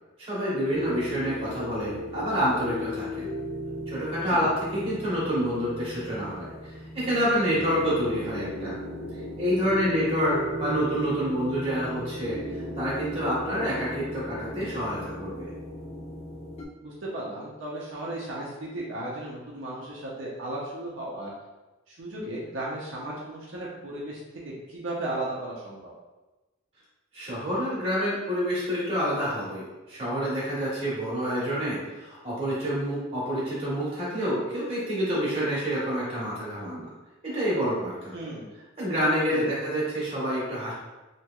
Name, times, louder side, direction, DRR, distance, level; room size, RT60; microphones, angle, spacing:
voice 1, 0.2-3.2 3.9-8.7 9.4-15.5 27.1-36.9 37.2-38.1 38.8-40.7, equal, 30° right, -7 dB, 1.1 m, -28 dB
sound 1, 0.7-16.7, left 1 dB, 30° left, 0.4 m, -37 dB
voice 2, 16.8-21.3 21.9-25.9 38.1-38.5 39.3-39.5, right 1 dB, 75° right, -5 dB, 0.6 m, -35 dB
2.9 x 2.8 x 2.3 m, 1.1 s
head